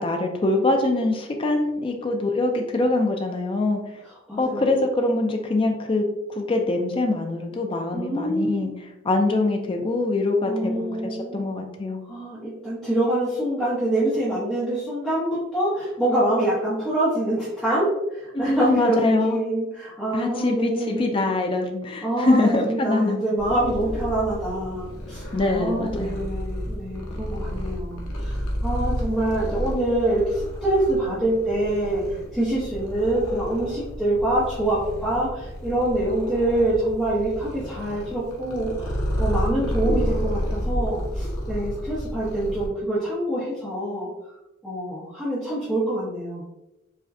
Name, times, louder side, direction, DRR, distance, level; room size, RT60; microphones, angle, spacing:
voice 1, 0.0-3.8 4.4-12.0 18.3-19.4 20.1-23.2 25.3-26.2, left 2 dB, 25° left, 3 dB, 0.3 m, -24 dB
voice 2, 4.3-4.7 7.9-8.7 10.4-11.5 12.1-21.2 22.0-32.0 32.3-44.1 44.6-46.4, right 1 dB, ahead, -12 dB, 0.8 m, -25 dB
Purr, 23.4-42.7, equal, 85° left, 0.7 m, -31 dB
4.7 x 2.2 x 2.6 m, 0.95 s
head